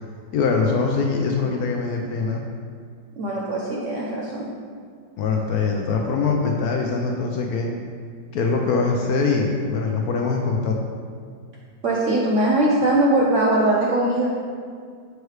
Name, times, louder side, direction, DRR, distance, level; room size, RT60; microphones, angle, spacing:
voice 1, 0.3-2.4 5.2-7.7 8.3-10.8, left 4 dB, 75° left, 1 dB, 0.9 m, -23 dB
voice 2, 3.2-4.5 11.8-14.3, right 1 dB, 80° right, -4 dB, 0.6 m, -21 dB
6.5 x 3.2 x 4.7 m, 2.1 s
omnidirectional pair, 2.0 m